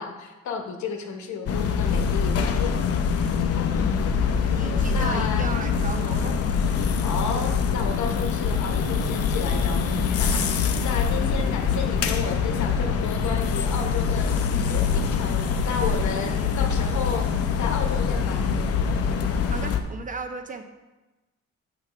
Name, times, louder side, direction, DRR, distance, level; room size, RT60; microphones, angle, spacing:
voice 1, 0.0-2.6 4.9-5.5 7.0-17.3 17.6-18.5, left 5 dB, 75° left, 4 dB, 0.9 m, -32 dB
sound 1, 1.5-19.8, left 6 dB, 55° left, 0.6 m, -24 dB
voice 2, 4.4-6.4 19.5-20.6, right 4 dB, 30° right, 6 dB, 0.5 m, -35 dB
7.3 x 5.8 x 3.3 m, 1.1 s
cardioid pair, 135°, 29 cm